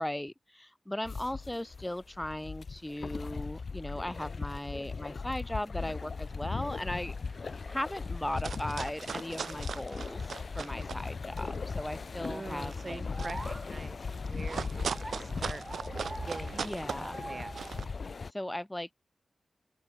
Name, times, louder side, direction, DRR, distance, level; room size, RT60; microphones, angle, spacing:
voice 1, 0.0-13.0 16.5-17.2 18.2-18.9, left 1 dB, 15° left, 1.4 m, -38 dB
sound 1, 1.0-18.3, left 4 dB, 65° left, 0.9 m, -39 dB
sound 2, 6.4-6.6 7.1-7.2 7.4-7.8 8.1-11.1 11.4-17.9, right 6 dB, 85° right, 1.3 m, -40 dB
sound 3, 7.4-18.2, right 2 dB, 30° right, 2.9 m, -49 dB
voice 2, 12.2-14.0 14.3-15.6 16.2-17.5, right 3 dB, 45° right, 6.2 m, -44 dB
open air
cardioid pair, 50°, 0 cm